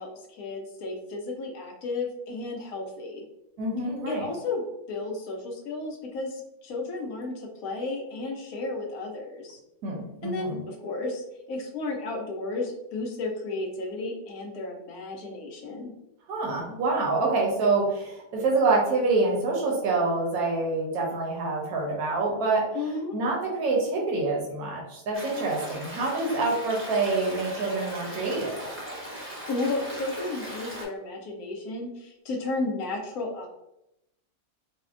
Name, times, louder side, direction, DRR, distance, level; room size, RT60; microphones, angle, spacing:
voice 1, 0.0-3.2 4.1-4.6 4.9-9.6 10.2-15.9 22.7-23.2 26.2-26.6 29.5-33.5, left 3 dB, 70° left, 2 dB, 1.0 m, -33 dB
voice 2, 3.6-4.2 9.8-10.6 16.3-22.7 23.1-28.7, right 3 dB, 75° right, -1 dB, 1.2 m, -26 dB
Stream, 25.1-30.8, equal, 15° right, 0.5 m, -38 dB
4.1 x 2.1 x 2.4 m, 0.85 s
omnidirectional pair, 1.6 m